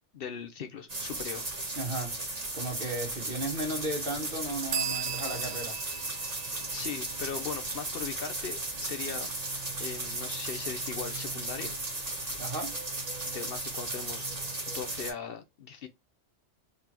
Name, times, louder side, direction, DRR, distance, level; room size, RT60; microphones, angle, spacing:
voice 1, 0.1-1.5 6.4-9.3 9.8-11.7 13.3-14.3 14.7-15.9, left 6 dB, 60° left, 0.7 m, -39 dB
sound 1, 0.9-15.1, right 2 dB, 35° right, 1.4 m, -36 dB
voice 2, 1.8-2.2 2.5-5.8 12.4-12.8, right 1 dB, 55° right, 1.5 m, -35 dB
sound 2, 4.7-8.3, right 9 dB, 90° right, 0.9 m, -38 dB
3.6 x 3.3 x 2.8 m
omnidirectional pair, 1.2 m